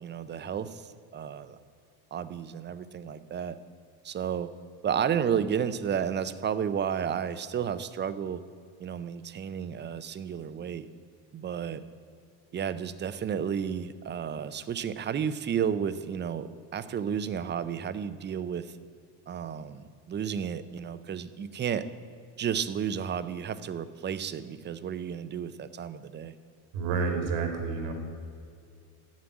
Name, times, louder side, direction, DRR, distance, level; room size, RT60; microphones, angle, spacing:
voice 1, 0.0-0.8 1.1-1.6 2.1-3.6 4.0-4.5 4.8-8.4 8.8-10.9 11.3-11.8 12.5-18.7 19.3-21.9 22.4-26.3, right 8 dB, 25° right, 13 dB, 0.5 m, -32 dB
voice 2, 26.7-27.9, right 5 dB, 90° right, 5 dB, 2.5 m, -29 dB
11.5 x 7.5 x 9.5 m, 2.4 s
cardioid pair, 145°, 45 cm